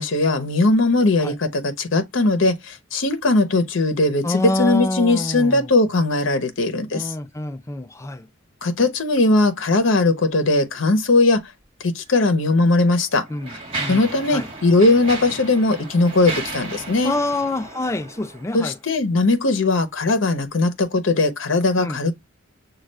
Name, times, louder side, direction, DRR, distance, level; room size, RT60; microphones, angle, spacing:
voice 1, 0.0-7.1 8.6-11.4 11.8-13.2 13.9-17.2 18.5-22.1, left 2 dB, 65° left, 0.8 m, -19 dB
voice 2, 4.2-5.7 6.9-8.3 13.3-13.5 13.8-14.0 14.3-14.5 17.0-18.8 21.8-22.0, left 2 dB, 15° left, 0.3 m, -26 dB
Mechanisms, 12.1-12.2 12.9-18.7, right 2 dB, 25° right, 1.7 m, -34 dB
6.3 x 2.4 x 3.2 m
head